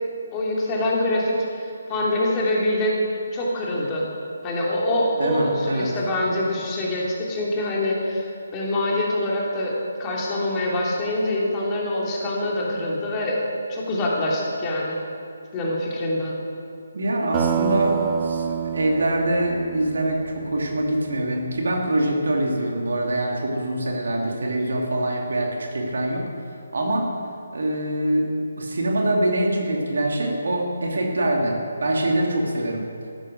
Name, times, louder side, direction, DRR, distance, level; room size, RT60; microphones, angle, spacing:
voice 1, 0.3-1.3 1.9-3.0 3.3-4.1 4.4-9.7 10.0-13.4 13.7-15.0 15.5-16.3, left 1 dB, 20° left, -3 dB, 2.9 m, -24 dB
voice 2, 5.2-5.9 16.9-26.2 26.7-27.1 27.5-32.9, right 1 dB, 60° right, 0 dB, 2.7 m, -24 dB
sound 1, 17.3-21.6, right 8 dB, 20° right, 0.9 m, -28 dB
14.5 x 13.0 x 6.4 m, 2.4 s
figure-of-eight pair, 145°, 0 cm